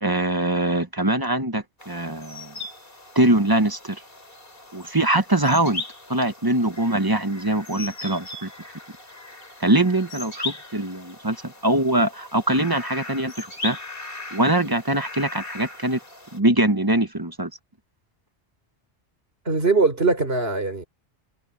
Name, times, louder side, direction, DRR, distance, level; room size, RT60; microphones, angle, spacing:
voice 1, 0.0-2.5 3.1-4.0 4.7-5.8 6.1-8.5 9.6-13.8 14.3-16.0 16.3-17.5, right 1 dB, 20° right, 1.1 m, -22 dB
sound 1, 1.8-16.4, left 2 dB, 55° left, 3.6 m, -39 dB
voice 2, 19.4-20.9, right 3 dB, 60° right, 4.4 m, -21 dB
omnidirectional pair, 1.2 m